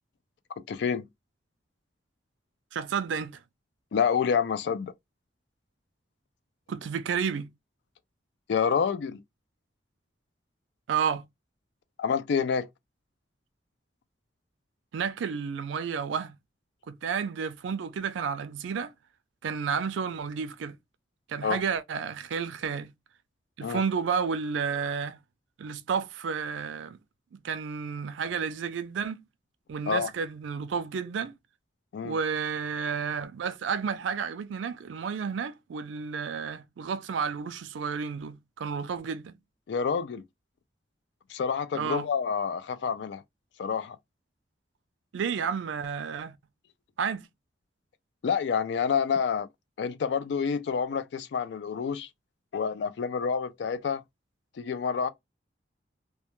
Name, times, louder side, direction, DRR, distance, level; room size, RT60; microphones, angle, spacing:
voice 1, 0.6-1.1 3.9-4.9 8.5-9.2 12.0-12.7 21.4-21.6 23.6-23.8 29.9-30.1 31.9-32.2 39.7-40.2 41.3-43.2 43.6-44.0 48.2-49.5 49.8-52.1 52.5-54.0 54.6-55.1, left 6 dB, 70° left, 0.3 m, -28 dB
voice 2, 2.7-3.4 6.7-7.5 10.9-11.2 14.9-16.3 16.9-18.9 19.4-20.7 21.3-22.9 23.6-25.2 25.6-27.0 27.4-29.2 29.7-31.4 32.0-39.3 41.7-42.1 45.1-46.3 47.0-47.3, right 6 dB, 85° right, 0.4 m, -31 dB
2.2 x 2.2 x 2.8 m
head